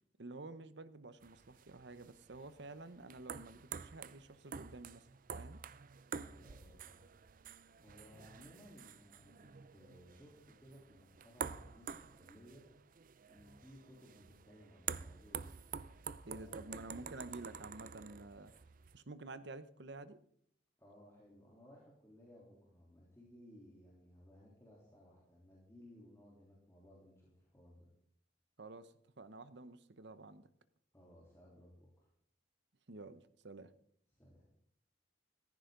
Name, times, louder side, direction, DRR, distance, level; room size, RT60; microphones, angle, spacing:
voice 1, 0.2-5.1 5.3-5.6 16.2-18.5 18.9-20.2 28.6-30.5 32.9-33.7, right 2 dB, 65° right, 1.0 m, -50 dB
sound 1, 1.2-19.0, right 7 dB, 45° right, 0.5 m, -49 dB
voice 2, 6.1-7.0 7.8-12.6 13.2-15.5 16.0-16.8 20.8-27.9 30.9-32.1 34.1-34.5, equal, 15° left, 3.4 m, -60 dB
16.0 x 14.5 x 3.9 m
head